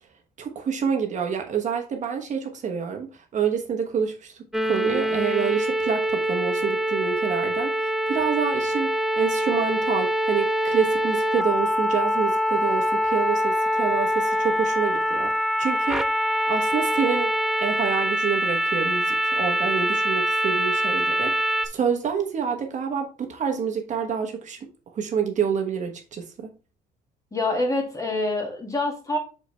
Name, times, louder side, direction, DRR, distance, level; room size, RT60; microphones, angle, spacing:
voice 1, 0.4-8.9 9.2-17.3 17.6-24.6 24.9-26.5, right 7 dB, 45° right, 1.2 m, -27 dB
sound 1, 4.5-21.7, equal, ahead, 0.5 m, -24 dB
voice 2, 27.3-29.2, left 2 dB, 20° left, 2.1 m, -26 dB
5.8 x 5.1 x 3.3 m
cardioid pair, 110°, 17 cm